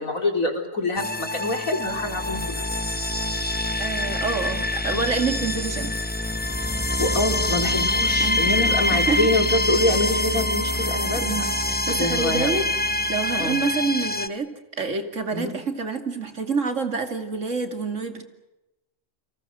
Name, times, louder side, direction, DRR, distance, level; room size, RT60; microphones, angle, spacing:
voice 1, 0.0-2.8 7.0-11.4 11.7-12.6 13.4-13.6 15.3-15.5, left 2 dB, 85° left, 4 dB, 4.4 m, -25 dB
sound 1, 1.0-14.3, left 1 dB, 10° left, 1.0 m, -25 dB
voice 2, 3.8-5.9 8.2-9.3 11.2-12.6 13.1-14.5 14.8-18.2, right 4 dB, 65° right, 6 dB, 3.1 m, -27 dB
28.5 x 26.5 x 6.4 m, 0.92 s
omnidirectional pair, 1.4 m